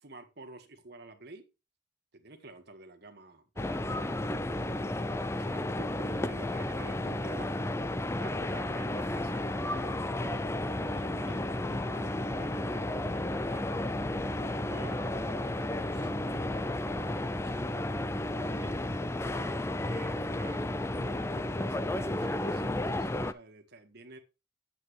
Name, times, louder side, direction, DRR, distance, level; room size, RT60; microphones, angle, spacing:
voice 1, 0.0-1.5 2.1-4.9 5.4-7.7 8.2-10.5 10.9-13.7 14.3-18.8 19.3-24.2, right 2 dB, 55° right, 1.6 m, -51 dB
sound 1, 3.6-23.3, left 1 dB, 15° left, 0.4 m, -32 dB
9.2 x 8.0 x 3.3 m
head